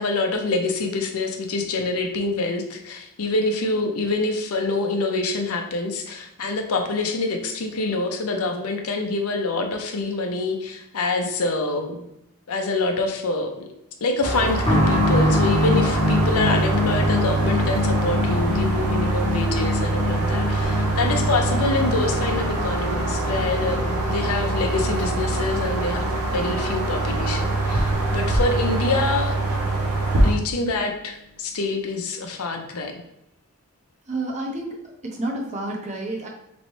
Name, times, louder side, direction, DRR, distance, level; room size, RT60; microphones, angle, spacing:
voice 1, 0.0-12.0 12.5-13.7 14.0-29.4 30.2-33.0, left 3 dB, 70° left, 4 dB, 0.6 m, -26 dB
sound 1, 14.2-30.3, right 2 dB, 85° right, 0.8 m, -24 dB
sound 2, 14.6-29.1 29.3-29.4 30.4-30.5, left 2 dB, 25° left, 0.9 m, -26 dB
voice 2, 34.1-34.8 35.0-36.3, right 2 dB, 30° right, 0 dB, 0.8 m, -29 dB
4.1 x 3.1 x 3.1 m, 0.83 s
head